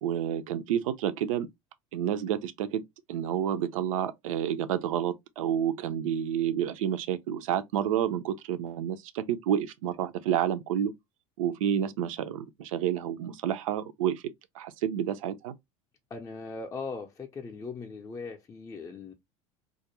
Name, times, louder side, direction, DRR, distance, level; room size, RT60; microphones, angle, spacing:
voice 1, 0.0-1.5 1.9-2.8 3.1-10.9 11.4-14.2 14.5-15.5, right 10 dB, 75° right, 0.4 m, -29 dB
voice 2, 16.1-19.1, left 4 dB, 20° left, 0.5 m, -39 dB
2.3 x 2.1 x 2.8 m
hypercardioid pair, 80°, 17 cm